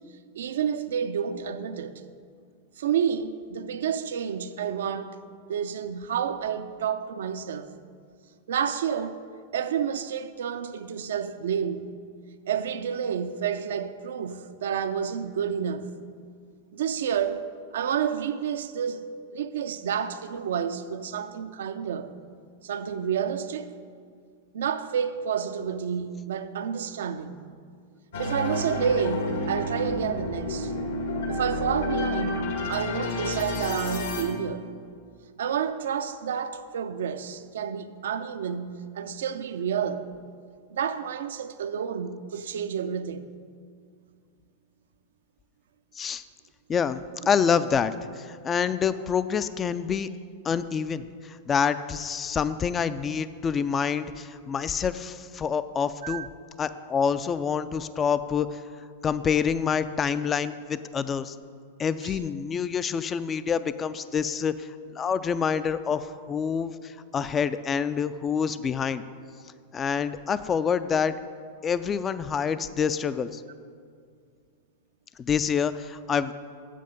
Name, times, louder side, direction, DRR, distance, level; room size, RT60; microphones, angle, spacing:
voice 1, 0.3-2.0 2.8-5.2 5.5-7.7 8.5-9.2 9.5-11.9 12.5-16.0 16.7-17.5 17.7-22.1 22.6-23.7 24.5-27.4 28.2-30.7 31.3-34.7 35.4-40.1 40.7-43.3 56.0-56.3 62.0-62.2, right 8 dB, 75° right, 0.5 m, -30 dB
sound 1, 28.1-34.2, left 2 dB, 75° left, 1.6 m, -30 dB
voice 2, 46.7-50.1 50.4-56.3 56.6-58.6 59.0-61.3 61.8-69.0 69.7-71.2 71.6-73.4 75.2-76.3, left 6 dB, 25° left, 0.3 m, -27 dB
7.7 x 7.6 x 5.2 m
hypercardioid pair, 105°, 0 cm